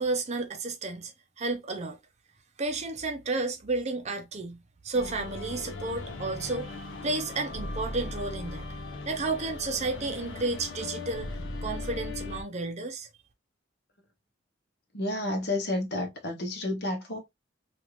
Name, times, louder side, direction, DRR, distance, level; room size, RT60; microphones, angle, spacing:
voice 1, 0.0-2.0 2.6-4.6 4.8-8.6 9.1-11.3 11.6-13.1, right 3 dB, 35° right, 0.6 m, -32 dB
sound 1, 4.9-12.4, left 2 dB, 75° left, 0.8 m, -38 dB
voice 2, 14.9-17.2, left 1 dB, 55° left, 1.0 m, -30 dB
3.3 x 2.5 x 2.9 m
head